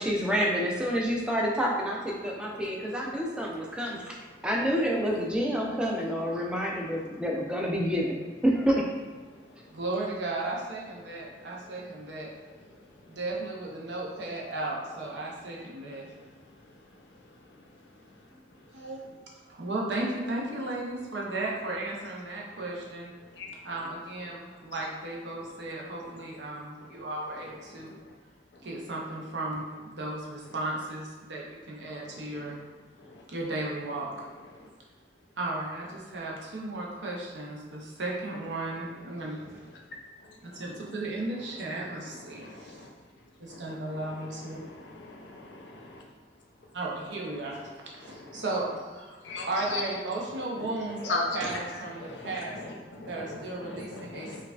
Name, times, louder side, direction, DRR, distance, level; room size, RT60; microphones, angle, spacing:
voice 1, 0.0-4.2 4.4-8.8, equal, 5° right, -2 dB, 0.4 m, -28 dB
voice 2, 9.7-12.3 13.1-16.0 18.7-19.0 19.5-23.1 23.6-27.9 28.6-32.6 33.3-34.1 35.4-39.6 40.4-42.8 43.4-44.6 46.7-47.6 47.8-49.2 49.5-52.6 53.1-54.4, right 2 dB, 75° right, -3 dB, 0.7 m, -35 dB
voice 3, 41.8-42.9 43.5-44.0 44.5-46.0 48.0-48.4 49.2-49.8 50.8-51.6 52.0-54.4, left 3 dB, 75° left, 0 dB, 0.5 m, -39 dB
4.5 x 2.4 x 2.4 m, 1.4 s
head